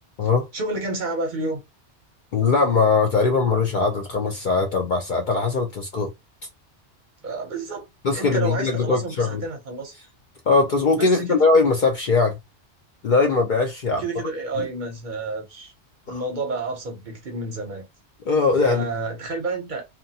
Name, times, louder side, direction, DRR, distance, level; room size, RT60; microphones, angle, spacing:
voice 1, 0.2-1.6 7.2-9.9 11.0-11.4 13.9-15.7 16.1-17.9 18.6-19.9, right 2 dB, 50° right, 0.7 m, -30 dB
voice 2, 2.3-6.1 8.0-9.4 10.5-12.4 13.0-14.0 16.1-16.2 18.3-18.8, left 4 dB, 55° left, 0.6 m, -20 dB
2.8 x 2.2 x 2.7 m
omnidirectional pair, 1.2 m